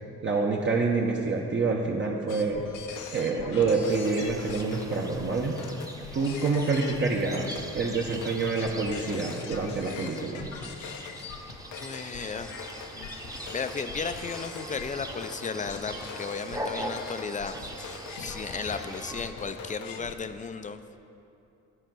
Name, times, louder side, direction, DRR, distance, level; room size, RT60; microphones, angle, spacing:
voice 1, 0.2-2.6 3.1-5.6 6.1-10.5, right 4 dB, 40° right, -2 dB, 0.8 m, -27 dB
sound 1, 2.3-20.1, left 6 dB, 80° left, 0.8 m, -42 dB
sound 2, 3.8-19.3, right 1 dB, 10° right, 0.8 m, -41 dB
voice 2, 11.8-12.5 13.5-20.8, left 5 dB, 25° left, 10 dB, 0.4 m, -35 dB
11.5 x 4.5 x 6.1 m, 2.7 s
cardioid pair, 90°, 30 cm